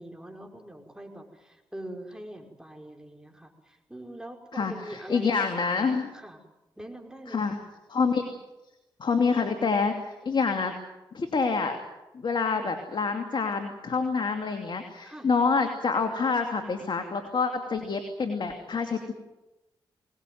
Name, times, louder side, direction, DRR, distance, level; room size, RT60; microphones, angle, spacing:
voice 1, 0.0-5.6 6.1-6.4 6.8-7.6 8.1-8.3 12.5-12.7 15.0-15.3, right 1 dB, 5° right, 2 dB, 5.2 m, -43 dB
voice 2, 4.5-6.1 7.3-7.6 7.9-8.2 9.0-10.7 11.1-11.8 12.1-19.1, left 5 dB, 55° left, 6 dB, 2.8 m, -27 dB
23.0 x 19.5 x 9.4 m, 1.0 s
supercardioid pair, 50°, 10 cm